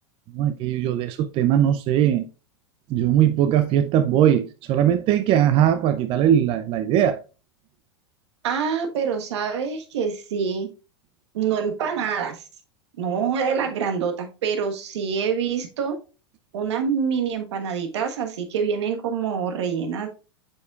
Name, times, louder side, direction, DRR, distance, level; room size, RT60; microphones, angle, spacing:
voice 1, 0.3-2.2 2.9-7.2, right 10 dB, 40° right, 0.5 m, -20 dB
voice 2, 8.4-10.7 11.3-12.4 13.0-16.0 16.5-20.2, right 6 dB, 75° right, 1.3 m, -26 dB
8.0 x 5.3 x 2.4 m
hypercardioid pair, 115°, 14 cm